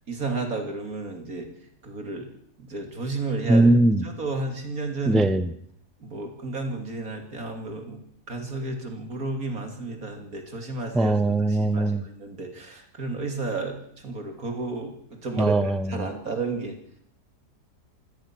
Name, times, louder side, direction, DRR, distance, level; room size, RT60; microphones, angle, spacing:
voice 1, 0.1-1.5 1.8-2.3 2.6-3.7 4.0-5.3 6.0-8.0 8.3-11.1 11.5-13.8 14.0-15.6 15.9-16.7, right 3 dB, 65° right, 4 dB, 3.4 m, -32 dB
voice 2, 3.5-4.0 5.1-5.5 10.9-12.0 15.4-16.1, right 2 dB, ahead, 14 dB, 0.6 m, -20 dB
26.0 x 17.5 x 6.2 m, 0.67 s
omnidirectional pair, 1.6 m